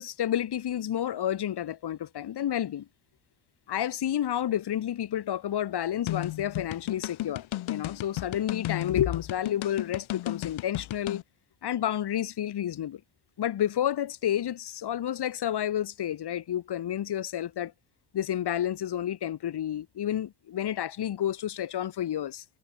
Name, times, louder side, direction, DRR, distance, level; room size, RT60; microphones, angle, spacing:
voice 1, 0.0-2.9 3.7-11.2 11.6-13.0 13.4-17.7 18.1-22.4, left 11 dB, 55° left, 2.0 m, -30 dB
sound 1, 6.1-11.2, left 15 dB, 75° left, 1.0 m, -34 dB
cardioid pair, 150°, 47 cm